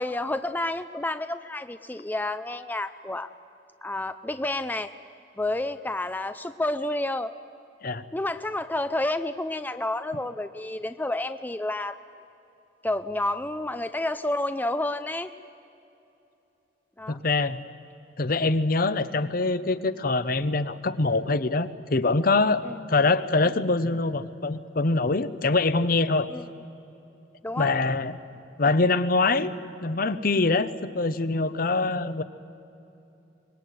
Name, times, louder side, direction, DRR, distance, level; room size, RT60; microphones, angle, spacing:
voice 1, 0.0-3.3 3.8-4.9 5.4-7.3 8.1-12.0 12.8-15.3 17.0-17.2 22.6-22.8 26.3-26.4 27.4-27.7, left 2 dB, 10° left, 11 dB, 0.5 m, -30 dB
voice 2, 17.1-17.6 18.2-26.3 27.6-28.2 28.6-29.6 29.8-32.2, left 3 dB, 55° left, 13 dB, 0.9 m, -24 dB
24.5 x 21.0 x 9.3 m, 2.8 s
head